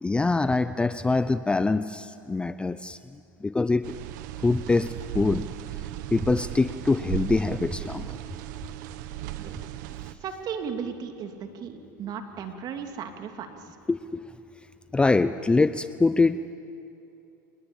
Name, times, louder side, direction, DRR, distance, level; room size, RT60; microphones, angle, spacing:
voice 1, 0.0-3.0 3.4-4.0 4.4-5.5 6.1-8.2 13.9-14.3 14.9-16.4, left 3 dB, 10° left, 13 dB, 0.5 m, -24 dB
sound 1, 3.8-10.1, right 13 dB, 70° right, 1.2 m, -36 dB
voice 2, 10.2-13.5, right 7 dB, 40° right, 5 dB, 2.7 m, -35 dB
27.0 x 20.0 x 8.8 m, 2.8 s
supercardioid pair, 115°, 10 cm